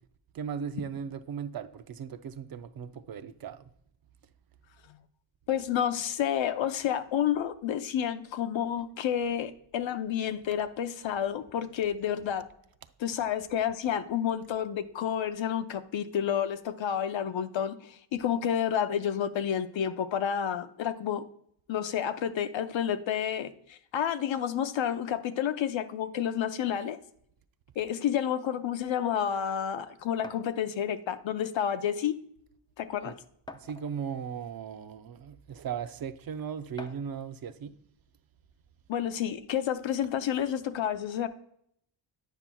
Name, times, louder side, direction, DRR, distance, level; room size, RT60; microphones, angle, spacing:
voice 1, 0.3-3.6 33.0-33.1 33.6-37.7, right 7 dB, 50° right, 0.5 m, -37 dB
voice 2, 5.5-12.4 13.0-17.8 18.1-21.2 21.7-27.0 27.8-32.1 32.8-33.1 38.9-41.3, left 9 dB, 70° left, 0.7 m, -30 dB
sound 1, 30.2-30.5 31.7-31.8 32.2-32.3 33.5-34.1 35.0-35.1 36.8-37.2, left 3 dB, 10° left, 0.4 m, -45 dB
9.1 x 5.6 x 2.2 m
cardioid pair, 90°, 47 cm